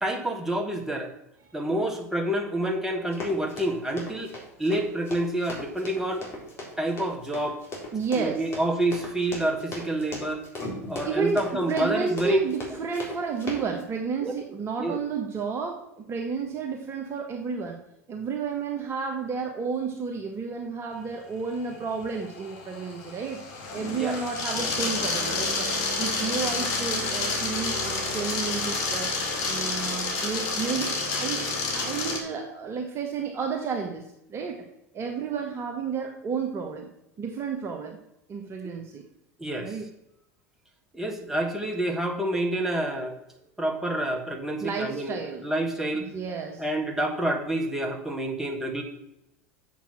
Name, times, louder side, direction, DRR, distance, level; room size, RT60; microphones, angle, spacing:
voice 1, 0.0-1.1 1.5-4.3 4.6-6.3 6.8-7.6 8.2-10.4 10.9-12.4 14.2-14.3 14.8-15.0 24.0-24.2 39.4-39.8 40.9-43.2 43.6-46.1 46.6-48.8, right 1 dB, 5° right, 2 dB, 2.1 m, -28 dB
Run, 3.1-13.8, left 1 dB, 30° left, 3.7 m, -38 dB
voice 2, 7.9-8.4 11.0-17.8 18.1-23.4 23.7-25.7 26.0-29.1 29.5-31.4 31.7-34.0 34.3-34.6 34.9-36.9 37.2-38.0 38.3-39.0 39.6-39.8 44.6-45.4 46.0-46.6, right 5 dB, 30° right, 2 dB, 1.3 m, -31 dB
sound 1, 21.6-32.2, left 3 dB, 50° left, 2.1 m, -29 dB
7.2 x 6.0 x 7.3 m, 0.84 s
figure-of-eight pair, 80°, 8 cm